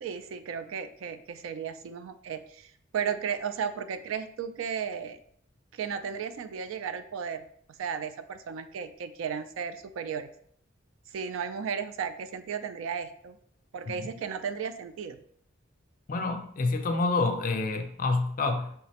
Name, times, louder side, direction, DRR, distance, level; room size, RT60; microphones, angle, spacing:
voice 1, 0.0-5.2 5.7-7.4 7.8-10.3 11.1-13.4 13.7-15.2, right 7 dB, 80° right, 11 dB, 0.3 m, -34 dB
voice 2, 16.1-18.7, left 3 dB, 40° left, 6 dB, 0.4 m, -28 dB
5.6 x 2.1 x 2.8 m, 0.65 s
head